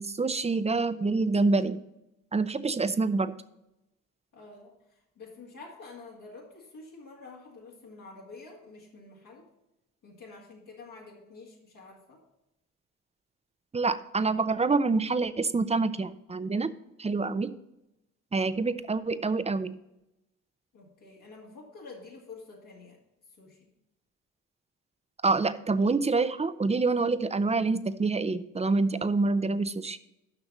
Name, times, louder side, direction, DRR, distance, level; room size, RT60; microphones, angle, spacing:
voice 1, 0.0-1.8 2.3-3.3 13.7-16.7 17.0-17.5 18.3-19.8 25.2-30.0, right 3 dB, 20° right, 14 dB, 0.6 m, -26 dB
voice 2, 4.3-9.5 10.0-12.2 20.7-23.0 23.4-23.7, left 3 dB, 70° left, -4 dB, 2.3 m, -48 dB
6.7 x 5.9 x 7.2 m, 0.88 s
supercardioid pair, 50°, 33 cm